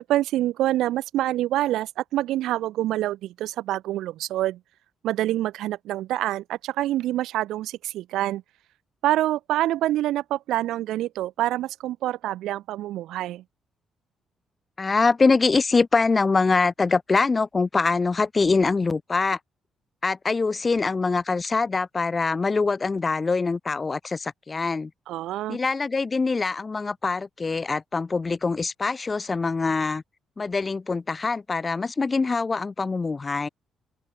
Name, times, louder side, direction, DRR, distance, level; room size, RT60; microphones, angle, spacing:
voice 1, 0.0-4.6 5.0-8.4 9.0-13.4 25.1-25.6, right 14 dB, 85° right, 0.9 m, -26 dB
voice 2, 14.8-19.4 20.0-24.9 25.5-30.0 30.4-33.5, left 4 dB, 30° left, 2.2 m, -24 dB
cardioid pair, 90°, 0 cm